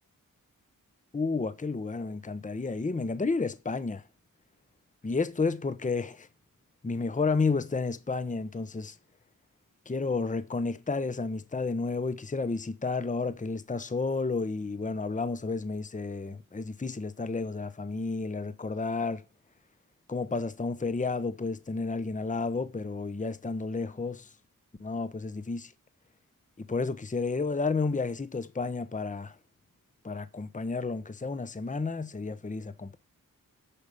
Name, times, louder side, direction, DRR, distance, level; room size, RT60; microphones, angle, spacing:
voice 1, 1.1-4.0 5.0-6.3 6.8-8.9 9.9-19.2 20.1-24.3 24.8-25.7 26.6-29.3 30.0-33.0, left 4 dB, 20° left, 0.8 m, -31 dB
12.5 x 4.9 x 5.5 m
cardioid pair, 45°, 34 cm